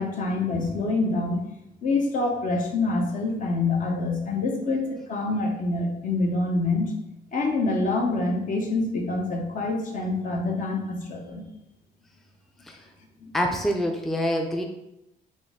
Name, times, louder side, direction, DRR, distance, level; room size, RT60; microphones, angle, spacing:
voice 1, 0.0-1.4 1.8-6.9 7.3-11.4 13.2-13.3, left 3 dB, 55° left, 2 dB, 0.9 m, -26 dB
voice 2, 13.3-14.6, equal, ahead, 2 dB, 0.4 m, -26 dB
4.2 x 2.6 x 3.6 m, 0.86 s
cardioid pair, 90°, 16 cm